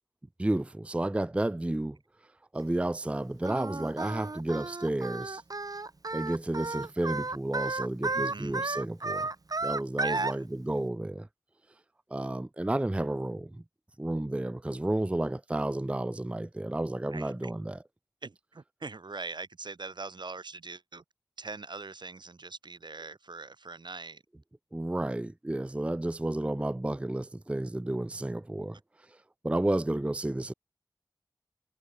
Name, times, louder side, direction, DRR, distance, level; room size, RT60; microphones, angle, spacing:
voice 1, 0.4-2.0 2.5-5.4 6.1-9.3 9.6-11.3 12.1-13.6 14.0-17.8 24.7-28.8 29.1-29.2 29.4-30.5, right 1 dB, 15° right, 0.4 m, -31 dB
Singing, 3.4-10.3, right 3 dB, 55° right, 1.0 m, -33 dB
voice 2, 8.1-8.8 10.0-10.4 17.1-17.5 18.2-21.0 21.4-24.2, right 3 dB, 80° right, 2.1 m, -42 dB
wide cardioid pair, 45°, 8 cm